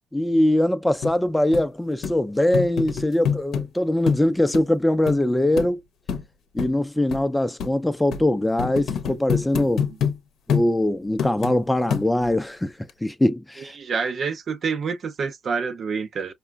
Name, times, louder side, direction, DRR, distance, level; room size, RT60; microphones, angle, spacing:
voice 1, 0.1-5.8 6.5-9.8 10.5-12.7 13.0-13.7, left 1 dB, 10° left, 0.5 m, -22 dB
sound 1, 1.0-1.1 1.5-1.6 2.0-2.2 2.5-3.7 4.1-4.2 4.5-4.6 5.1-5.2 5.6-5.7 6.1-6.2 6.6-6.7 7.1-7.2 7.6-7.7 8.1-8.2 8.6-10.2 10.5-10.7 11.2-11.6 11.9-12.4 12.9-13.0, left 7 dB, 75° left, 0.7 m, -26 dB
voice 2, 13.6-16.3, right 5 dB, 50° right, 0.5 m, -27 dB
4.8 x 2.2 x 2.3 m
cardioid pair, 90°, 0 cm